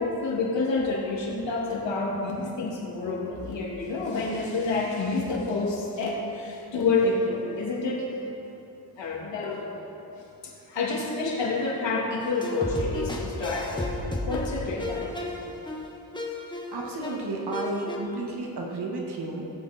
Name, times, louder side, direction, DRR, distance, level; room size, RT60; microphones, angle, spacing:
voice 1, 0.0-8.1 9.0-9.6 10.1-13.9 14.3-15.2, left 3 dB, 85° left, -4 dB, 2.8 m, -28 dB
sound 1, 12.2-18.0, left 2 dB, 10° left, 1.7 m, -33 dB
voice 2, 16.7-19.5, right 2 dB, 65° right, -1 dB, 2.1 m, -32 dB
18.0 x 8.9 x 4.5 m, 2.9 s
cardioid pair, 95°, 43 cm